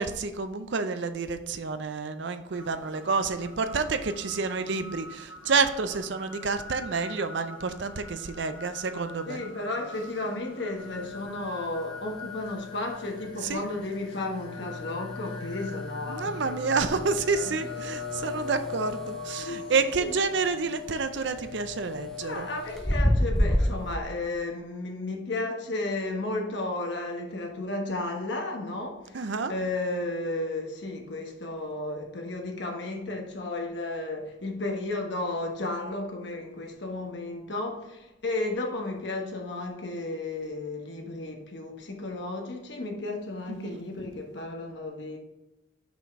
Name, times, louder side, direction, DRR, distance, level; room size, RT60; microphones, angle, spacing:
voice 1, 0.0-9.4 13.4-13.6 16.1-22.5 29.1-29.5 43.5-43.8, right 4 dB, 60° right, 0.5 m, -29 dB
sound 1, 2.5-20.9, left 2 dB, 85° left, 1.5 m, -46 dB
voice 2, 9.3-17.6 17.9-18.0 19.4-20.1 22.2-45.2, left 2 dB, 60° left, 1.2 m, -33 dB
sound 2, 10.8-24.0, left 1 dB, ahead, 0.4 m, -33 dB
5.9 x 5.8 x 3.6 m
head